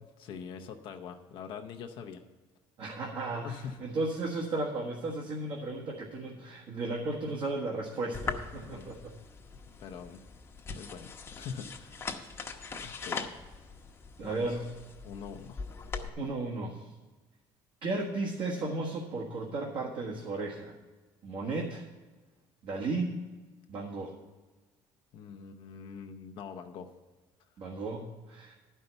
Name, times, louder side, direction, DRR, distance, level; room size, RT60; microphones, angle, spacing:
voice 1, 0.2-2.2 3.4-3.9 8.6-8.9 9.8-10.2 10.7-12.1 12.8-13.3 14.2-14.6 15.0-15.6 25.1-26.9, left 6 dB, 65° left, 4 dB, 0.7 m, -44 dB
voice 2, 2.8-9.1 14.2-14.7 16.2-16.9 17.8-20.7 21.2-21.8 22.6-23.2 23.7-24.1 27.6-28.5, right 2 dB, 55° right, -3 dB, 1.5 m, -34 dB
sound 1, 8.1-16.1, left 4 dB, 30° left, 0.9 m, -41 dB
11.0 x 5.5 x 7.9 m, 1.3 s
cardioid pair, 115°, 9 cm